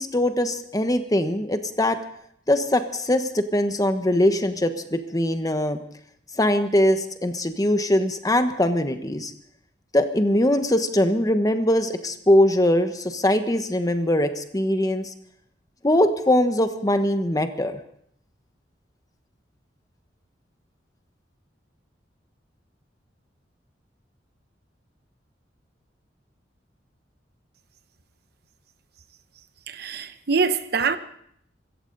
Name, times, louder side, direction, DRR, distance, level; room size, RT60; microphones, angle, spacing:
voice 1, 0.0-2.0 2.5-5.8 6.4-9.3 9.9-15.1 15.8-17.8, left 1 dB, 20° left, 1.2 m, -22 dB
voice 2, 29.7-31.0, right 5 dB, 60° right, 0.9 m, -24 dB
25.0 x 14.5 x 4.0 m
head